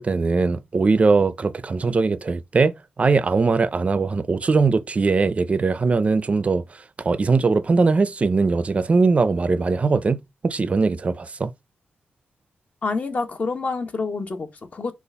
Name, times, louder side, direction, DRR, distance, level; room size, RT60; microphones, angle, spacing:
voice 1, 0.0-10.2 10.4-11.5, right 4 dB, 40° right, 0.5 m, -20 dB
voice 2, 12.8-14.9, left 4 dB, 45° left, 1.1 m, -27 dB
6.8 x 2.5 x 5.6 m
wide cardioid pair, 125°, 4 cm